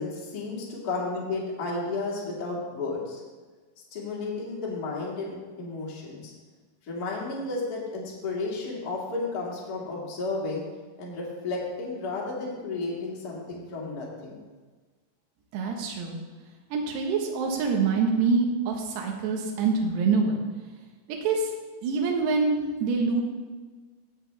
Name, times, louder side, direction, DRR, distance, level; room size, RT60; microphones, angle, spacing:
voice 1, 0.0-3.2 3.9-6.3 6.9-10.6 11.0-14.4, left 3 dB, 40° left, -4 dB, 1.4 m, -32 dB
voice 2, 15.5-16.2 16.7-20.4 21.2-21.5 21.8-23.2, right 4 dB, 70° right, 1 dB, 3.2 m, -25 dB
16.0 x 7.1 x 3.4 m, 1.4 s
omnidirectional pair, 5.3 m